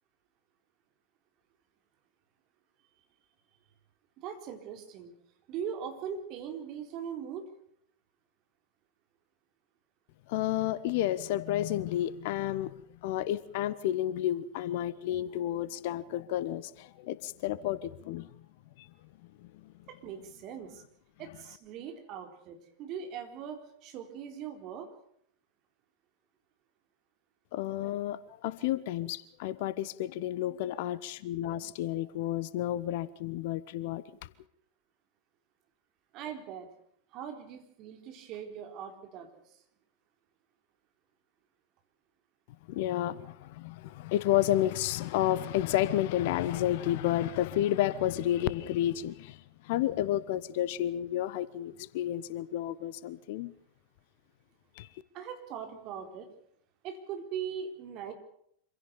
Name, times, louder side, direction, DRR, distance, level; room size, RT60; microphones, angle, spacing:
voice 1, 4.2-5.1 5.5-7.5 19.9-20.8 21.2-24.9 36.1-36.7 37.1-39.4 55.1-56.3 56.8-58.1, right 8 dB, 40° right, 4.2 m, -40 dB
voice 2, 10.3-12.7 13.0-18.3 18.8-18.9 19.6-19.7 27.5-34.0 42.7-49.4 49.6-53.5 54.8-54.9, left 13 dB, 50° left, 1.0 m, -31 dB
26.0 x 16.5 x 7.0 m
figure-of-eight pair, 90°, 0 cm